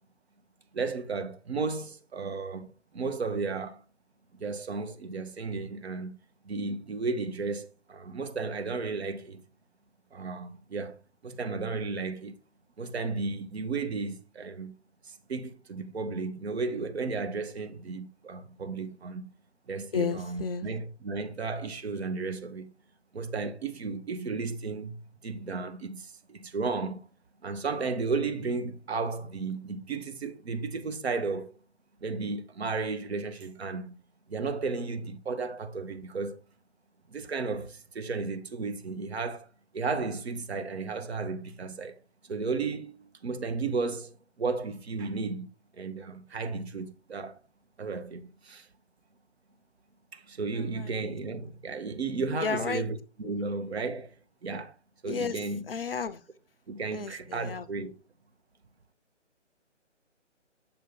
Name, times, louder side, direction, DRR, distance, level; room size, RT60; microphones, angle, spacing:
voice 1, 0.7-3.8 4.3-6.2 6.4-9.4 10.1-11.0 11.2-12.3 12.8-14.7 15.1-19.3 19.7-22.7 23.1-27.0 27.4-31.6 32.0-33.9 34.3-36.4 37.1-42.0 42.3-45.5 45.7-47.4 47.8-48.7 50.1-54.1 54.4-54.7 55.0-55.6 56.7-58.0, right 4 dB, 55° right, 0.8 m, -34 dB
voice 2, 19.9-20.7 50.8-51.0 52.4-52.8 53.2-53.4 55.1-56.2 56.9-57.7, left 6 dB, 50° left, 0.5 m, -33 dB
6.9 x 2.7 x 5.2 m
figure-of-eight pair, 145°, 37 cm